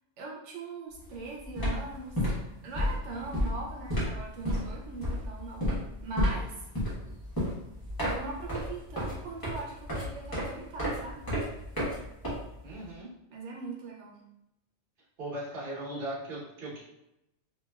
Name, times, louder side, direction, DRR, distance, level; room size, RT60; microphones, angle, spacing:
voice 1, 0.2-2.2 2.6-5.7 6.0-6.6 8.0-11.3 13.3-14.2, right 3 dB, 90° right, -2 dB, 0.9 m, -40 dB
sound 1, 1.0-1.2 1.4-12.9, equal, 20° left, 1.0 m, -32 dB
voice 2, 12.6-13.1 15.2-16.8, right 1 dB, 50° right, -6 dB, 1.1 m, -38 dB
3.0 x 2.6 x 2.3 m, 0.87 s
omnidirectional pair, 1.2 m